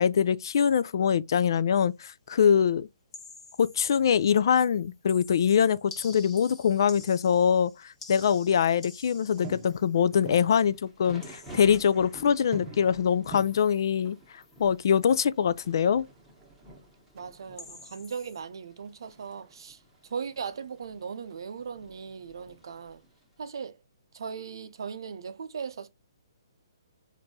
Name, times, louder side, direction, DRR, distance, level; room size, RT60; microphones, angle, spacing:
voice 1, 0.0-2.9 3.6-16.0, left 7 dB, 60° left, 0.3 m, -24 dB
sound 1, 3.1-4.3 4.6-10.5 11.2-12.2 13.4-14.1 14.4-14.7 15.0-15.2 17.6-18.4, left 3 dB, 20° left, 1.1 m, -50 dB
sound 2, 5.9-7.5 7.8-8.7 9.2-11.2 11.5-11.6 11.8-17.7 18.1-20.7 20.9-21.5, right 2 dB, 30° right, 0.8 m, -49 dB
Thunder / Rain, 10.5-23.4, right 1 dB, ahead, 1.4 m, -51 dB
voice 2, 17.1-19.8 20.1-23.0 23.4-23.8 24.1-25.9, right 6 dB, 70° right, 0.5 m, -38 dB
4.4 x 2.6 x 2.7 m
hypercardioid pair, 150°, 2 cm